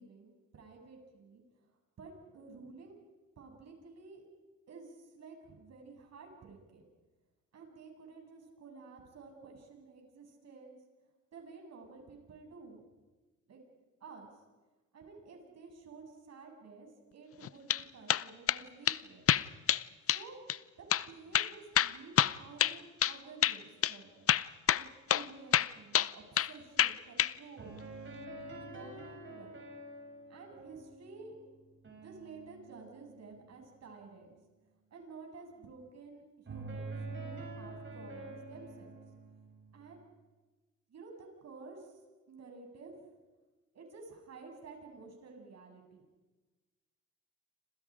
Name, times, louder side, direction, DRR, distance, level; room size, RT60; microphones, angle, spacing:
voice 1, 0.0-1.4 2.0-2.9 3.4-4.2 4.7-6.8 7.5-10.8 11.3-12.8 13.5-13.7 14.0-14.3 14.9-19.3 20.1-20.4 20.8-24.3 24.7-27.8 28.3-29.6 30.3-31.4 32.0-34.4 34.9-38.9 39.7-40.0 40.9-42.0 42.3-42.9 43.7-46.0, right 4 dB, 60° right, 2 dB, 7.6 m, -52 dB
sound 1, 17.4-17.8 18.1-18.6 18.9-19.0 19.3-19.8 20.1-20.2 20.5-20.6 20.9-21.1 21.3-23.2 23.4-23.6 23.8-23.9 24.3-24.8 25.1-25.3 25.5-26.5 26.8-27.3, left 10 dB, 50° left, 0.7 m, -27 dB
sound 2, 27.6-33.4 36.5-40.0, right 2 dB, 40° right, 7.7 m, -47 dB
29.0 x 27.0 x 5.1 m, 1.2 s
cardioid pair, 90°, 30 cm